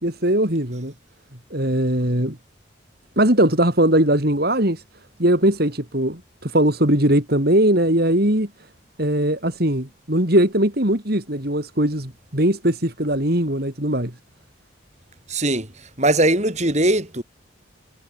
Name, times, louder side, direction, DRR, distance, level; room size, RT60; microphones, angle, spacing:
voice 1, 0.0-0.9 1.5-2.4 3.2-4.8 5.2-8.5 9.0-14.1, right 1 dB, 50° right, 4.2 m, -20 dB
voice 2, 15.3-17.2, right 1 dB, 35° right, 7.6 m, -20 dB
head